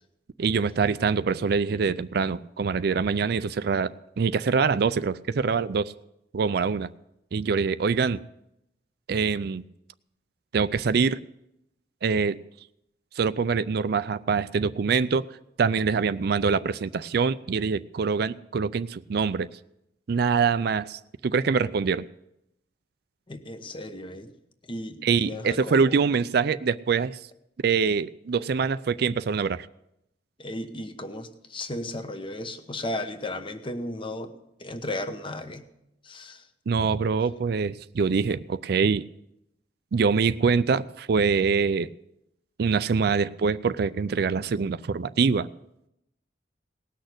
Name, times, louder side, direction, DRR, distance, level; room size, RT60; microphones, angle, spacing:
voice 1, 0.4-5.9 6.3-6.9 7.3-8.2 9.1-9.6 10.5-11.2 12.0-12.4 13.2-15.2 15.6-19.5 20.1-22.0 25.0-27.2 27.6-29.7 36.7-39.0 39.9-41.9 42.6-45.5, right 5 dB, 60° right, 14 dB, 0.4 m, -24 dB
voice 2, 23.3-24.3 24.7-25.9 30.4-34.3 34.6-35.7 36.0-36.4, left 1 dB, 30° left, 9 dB, 1.0 m, -35 dB
18.5 x 6.5 x 8.0 m, 0.83 s
head